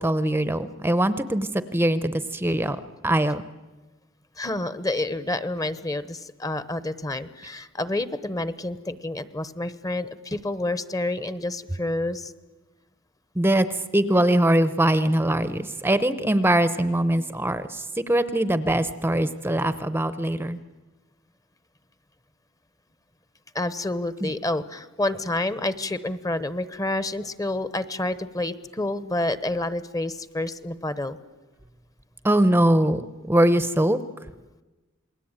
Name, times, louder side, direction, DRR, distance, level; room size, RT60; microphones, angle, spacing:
voice 1, 0.0-2.8 3.0-3.4 13.4-13.7 13.9-20.6 24.2-24.3 32.2-34.0, right 1 dB, 10° right, 13 dB, 0.8 m, -22 dB
voice 2, 4.4-12.3 23.5-31.2, left 2 dB, 15° left, 14 dB, 1.0 m, -29 dB
28.0 x 21.0 x 8.9 m, 1.2 s
head